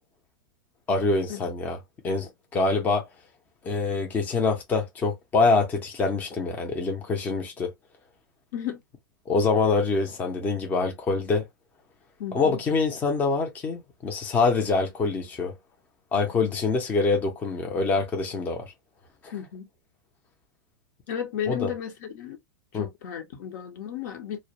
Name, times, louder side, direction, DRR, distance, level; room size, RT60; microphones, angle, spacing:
voice 1, 0.9-1.8 2.0-3.0 3.6-7.7 9.3-11.4 12.3-15.5 16.1-18.7 19.2-19.3 21.5-21.7 22.7-22.9, left 3 dB, 15° left, 0.5 m, -25 dB
voice 2, 12.2-12.6 19.3-19.7 21.1-22.4 22.7-24.4, left 9 dB, 60° left, 0.8 m, -34 dB
2.2 x 2.1 x 2.7 m
hypercardioid pair, 140°, 11 cm